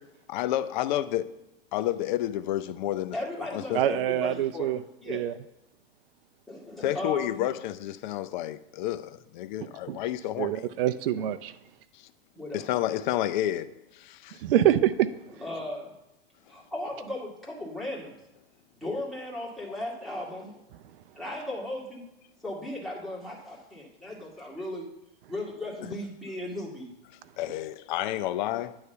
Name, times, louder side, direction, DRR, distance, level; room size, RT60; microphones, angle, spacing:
voice 1, 0.3-1.3 1.7-3.8 6.8-10.7 11.9-12.1 12.5-14.4 27.4-28.8, left 13 dB, 50° left, 0.5 m, -30 dB
voice 2, 3.1-4.7 5.0-5.3 6.5-7.4 11.2-11.3 12.4-12.7 15.4-15.9 16.5-18.1 18.7-20.6 21.1-22.0 22.4-24.9 25.3-26.9, left 1 dB, ahead, 2.0 m, -36 dB
voice 3, 3.7-4.8 5.1-5.3 9.9-10.0 10.4-11.5 14.4-15.1, right 11 dB, 70° right, 0.5 m, -25 dB
9.6 x 3.2 x 6.7 m
hypercardioid pair, 125°, 30 cm